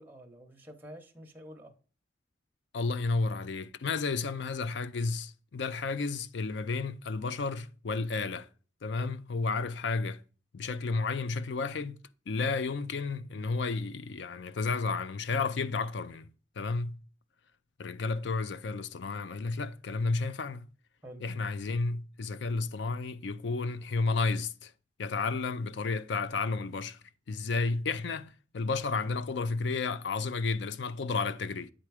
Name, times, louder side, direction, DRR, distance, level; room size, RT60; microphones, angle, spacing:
voice 1, 0.0-1.7 9.0-9.1 21.0-21.2, equal, 10° right, 1.0 m, -48 dB
voice 2, 2.7-8.5 8.8-10.2 10.5-12.0 12.3-16.3 16.6-17.0 17.8-20.7 21.2-24.7 25.0-27.0 27.3-31.7, left 4 dB, 70° left, 0.5 m, -32 dB
8.8 x 3.8 x 4.8 m
head